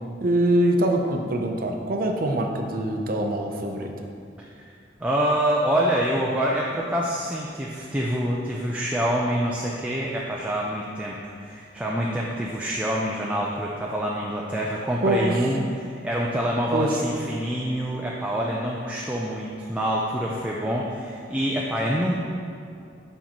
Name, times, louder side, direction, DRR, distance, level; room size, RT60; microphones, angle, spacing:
voice 1, 0.2-3.9 15.0-15.5 16.7-17.0, right 1 dB, 50° right, 2 dB, 0.6 m, -24 dB
voice 2, 5.0-22.2, equal, 5° right, -4 dB, 0.4 m, -26 dB
7.3 x 5.4 x 2.9 m, 2.4 s
head